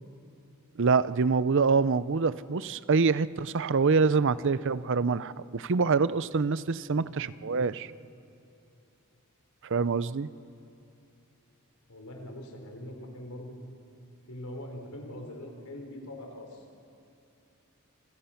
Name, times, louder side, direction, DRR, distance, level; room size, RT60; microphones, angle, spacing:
voice 1, 0.8-7.9 9.6-10.3, right 4 dB, 55° right, 16 dB, 0.6 m, -25 dB
voice 2, 6.8-7.3 7.7-7.8 11.9-13.6 14.3-16.6, left 1 dB, 85° left, 3 dB, 4.3 m, -43 dB
27.5 x 27.0 x 5.9 m, 2.8 s
head